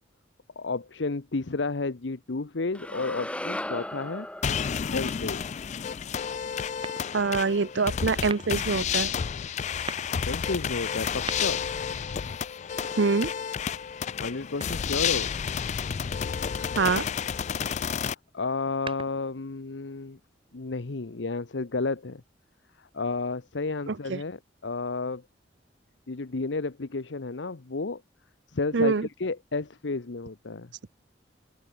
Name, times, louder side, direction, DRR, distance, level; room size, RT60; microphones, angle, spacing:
voice 1, 0.6-4.3 4.9-5.4 10.2-11.6 14.2-15.3 18.0-20.2 20.5-22.2 22.8-25.2 26.1-28.0 28.5-28.9 29.2-30.7, left 3 dB, 85° left, 0.9 m, -32 dB
sound 1, 2.7-7.0, left 1 dB, 5° left, 5.1 m, -38 dB
sound 2, 4.4-18.1, left 7 dB, 40° left, 0.3 m, -31 dB
sound 3, 6.8-7.4 8.2-8.7 9.7-10.2 11.0-11.8 12.6-13.6 14.6-15.2 16.7-17.2 18.5-19.4, right 4 dB, 30° right, 2.7 m, -41 dB
voice 2, 7.1-9.1 13.0-13.3 16.7-17.1 23.9-24.2 28.7-29.1, right 4 dB, 80° right, 0.7 m, -25 dB
open air
head